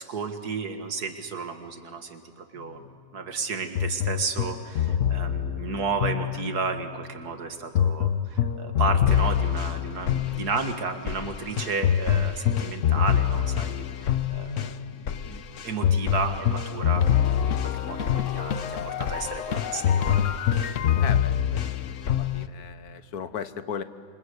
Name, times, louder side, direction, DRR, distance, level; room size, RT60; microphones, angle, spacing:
voice 1, 0.0-2.9 3.1-20.2, right 4 dB, 90° right, 6 dB, 2.3 m, -33 dB
sound 1, 3.8-6.9 7.7-22.5, left 9 dB, 60° left, 1.1 m, -25 dB
voice 2, 21.0-21.6 22.1-23.8, left 7 dB, 80° left, 11 dB, 1.6 m, -36 dB
27.5 x 24.5 x 8.2 m, 2.5 s
omnidirectional pair, 1.6 m